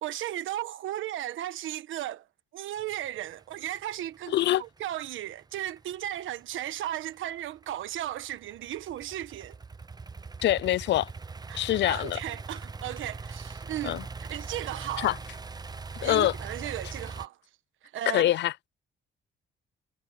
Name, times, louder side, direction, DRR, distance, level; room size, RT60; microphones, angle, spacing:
voice 1, 0.0-2.3 2.5-9.6 11.5-15.1 16.0-17.4 17.9-18.3, right 12 dB, 80° right, 1.3 m, -35 dB
sound 1, 2.8-17.3, right 4 dB, 20° right, 0.8 m, -41 dB
voice 2, 4.3-4.6 10.4-11.1 11.5-12.2 13.8-14.0 15.0-15.2 16.0-16.3 18.1-18.5, left 14 dB, 65° left, 0.4 m, -24 dB
cardioid pair, 90°, 20 cm